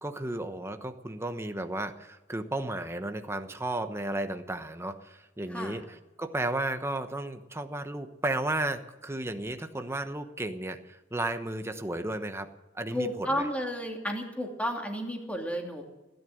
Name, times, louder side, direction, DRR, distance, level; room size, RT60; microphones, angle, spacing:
voice 1, 0.0-13.5, right 2 dB, 15° right, 7 dB, 1.0 m, -34 dB
voice 2, 5.5-5.8 12.9-15.8, equal, 5° left, 1 dB, 2.7 m, -32 dB
16.5 x 11.0 x 7.8 m, 1.1 s
head